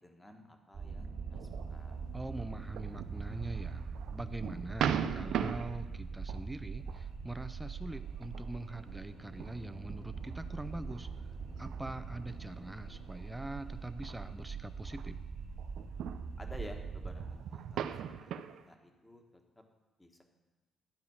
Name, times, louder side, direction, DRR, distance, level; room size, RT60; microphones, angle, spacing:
voice 1, 0.0-2.0 16.4-18.4 18.6-19.6 20.0-20.1, left 1 dB, 10° left, 3 dB, 1.4 m, -52 dB
sound 1, 0.7-17.4, right 5 dB, 55° right, 2.3 m, -43 dB
sound 2, 1.3-7.0 7.4-7.7 8.2-8.8 9.4-15.1 15.3-18.6, right 9 dB, 80° right, 0.5 m, -40 dB
voice 2, 2.1-11.1 11.6-15.2, right 1 dB, 10° right, 10 dB, 0.6 m, -43 dB
12.0 x 4.9 x 7.1 m, 1.2 s
cardioid pair, 90°, 0 cm